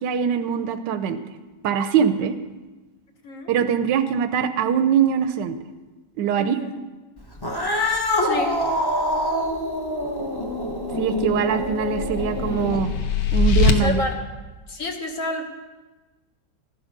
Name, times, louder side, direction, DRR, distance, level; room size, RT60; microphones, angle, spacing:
voice 1, 0.0-1.2 1.6-2.4 3.5-5.6 6.2-6.6 11.0-12.9 13.3-14.0, right 7 dB, 80° right, 9 dB, 1.3 m, -22 dB
voice 2, 6.4-6.7 8.2-8.6 13.8-14.3 14.7-15.4, left 2 dB, 50° left, 4 dB, 1.6 m, -29 dB
Cat, 7.3-13.0, left 1 dB, 15° left, 1.0 m, -25 dB
sound 1, 10.9-13.7, left 4 dB, 70° left, 1.6 m, -23 dB
14.5 x 11.0 x 5.2 m, 1.2 s
omnidirectional pair, 1.9 m